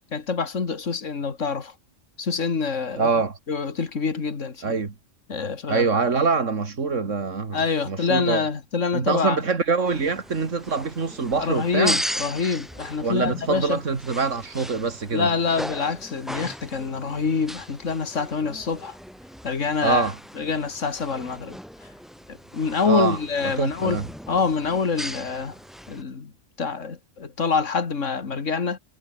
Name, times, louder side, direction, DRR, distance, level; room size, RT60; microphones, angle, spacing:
voice 1, 0.0-1.7 2.2-3.1 3.5-4.8 5.3-5.9 7.5-9.4 11.4-13.8 15.1-19.0 19.4-20.1 20.4-21.6 22.3-24.0 24.3-25.6 25.9-26.3 26.6-28.8, left 5 dB, 75° left, 2.5 m, -26 dB
voice 2, 3.0-3.3 4.6-4.9 5.7-7.6 7.9-8.4 8.9-12.0 13.0-15.3 19.8-20.1 22.8-23.2 23.6-24.1, right 4 dB, 75° right, 2.6 m, -24 dB
sound 1, 9.9-26.0, equal, ahead, 3.7 m, -37 dB
omnidirectional pair, 1.3 m